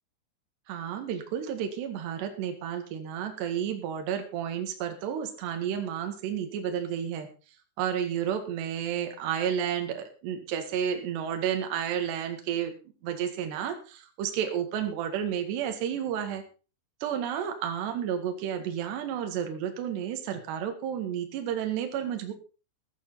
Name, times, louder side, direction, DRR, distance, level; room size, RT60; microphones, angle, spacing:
voice 1, 0.7-7.3 7.8-12.7 13.0-16.4 17.0-22.3, right 9 dB, 65° right, 5 dB, 3.7 m, -31 dB
14.0 x 12.5 x 4.1 m, 0.34 s
omnidirectional pair, 5.7 m